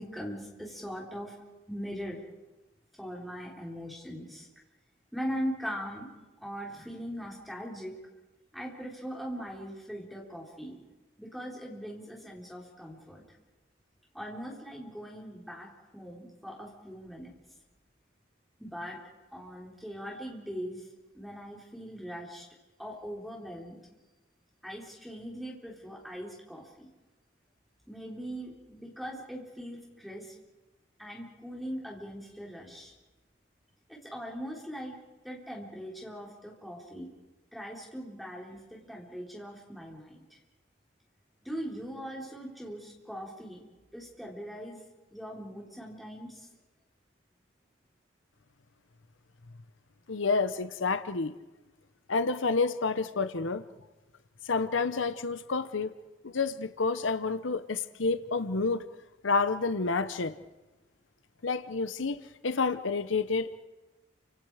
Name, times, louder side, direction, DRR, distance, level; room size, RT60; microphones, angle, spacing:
voice 1, 0.0-1.3 1.7-2.2 3.0-4.5 5.1-6.1 6.4-8.0 8.5-10.8 11.2-13.2 14.1-17.3 18.6-19.0 19.3-20.8 21.1-22.5 22.8-23.8 24.6-26.9 27.9-30.3 31.0-32.9 33.9-35.0 35.2-37.1 37.5-40.4 41.4-43.6 43.9-44.8 45.1-46.5, equal, ahead, -3 dB, 4.1 m, -40 dB
voice 2, 50.1-51.3 52.1-53.6 54.5-55.9 56.2-58.8 59.2-60.3 61.4-63.6, left 4 dB, 90° left, 12 dB, 0.9 m, -29 dB
29.0 x 26.0 x 5.0 m, 1.1 s
head